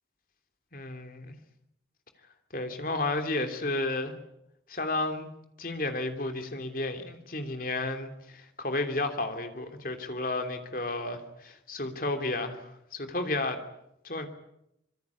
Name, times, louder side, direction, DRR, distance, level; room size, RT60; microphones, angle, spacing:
voice 1, 0.7-1.3 2.5-4.1 4.7-5.3 5.6-13.6 14.0-14.3, left 2 dB, 50° left, 3.1 m, -32 dB
25.5 x 24.0 x 8.5 m
head